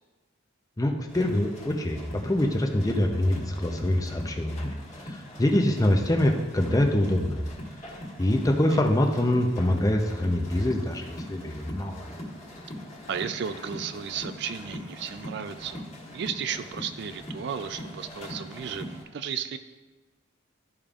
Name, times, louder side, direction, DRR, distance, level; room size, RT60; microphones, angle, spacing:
voice 1, 0.8-4.7 5.1-7.4 8.2-12.0, left 1 dB, 15° left, 3 dB, 0.6 m, -25 dB
sound 1, 1.1-19.0, left 1 dB, 35° left, 1.6 m, -41 dB
voice 2, 13.1-19.6, right 7 dB, 55° right, 10 dB, 0.4 m, -34 dB
13.0 x 5.1 x 2.4 m, 1.3 s
head